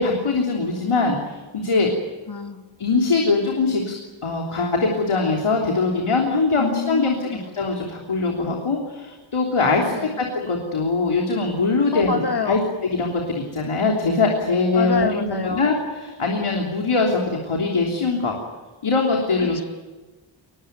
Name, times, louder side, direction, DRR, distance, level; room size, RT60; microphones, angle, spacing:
voice 1, 0.0-1.9 2.8-18.4 18.8-19.6, left 3 dB, 85° left, 0 dB, 3.4 m, -22 dB
voice 2, 2.3-2.7 6.6-7.5 9.9-10.2 11.9-12.7 14.7-15.7 19.4-19.6, left 4 dB, 50° left, 6 dB, 2.2 m, -27 dB
22.0 x 21.5 x 9.4 m, 1.3 s
wide cardioid pair, 70°, 49 cm